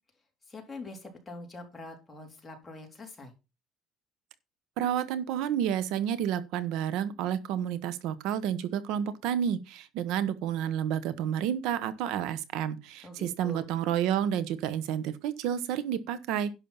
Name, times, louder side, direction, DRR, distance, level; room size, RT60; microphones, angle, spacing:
voice 1, 0.5-3.3 13.0-13.7, left 2 dB, 10° left, 3.6 m, -44 dB
voice 2, 4.8-16.5, right 9 dB, 80° right, 1.1 m, -30 dB
11.0 x 6.5 x 5.7 m
cardioid pair, 135°, 0 cm